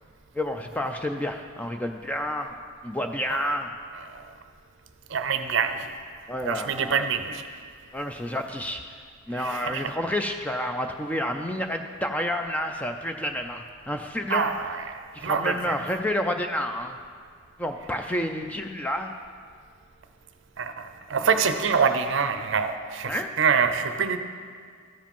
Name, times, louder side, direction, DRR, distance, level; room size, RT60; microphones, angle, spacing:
voice 1, 0.4-2.5 2.8-3.7 6.3-7.1 7.9-8.8 9.3-14.5 15.1-17.0 17.6-19.1 23.1-23.3, left 1 dB, 5° left, 5 dB, 0.3 m, -29 dB
voice 2, 5.1-5.9 6.4-7.4 9.3-9.9 14.3-15.8 20.6-24.2, right 6 dB, 60° right, 8 dB, 0.6 m, -26 dB
13.5 x 5.0 x 5.4 m, 2.1 s
head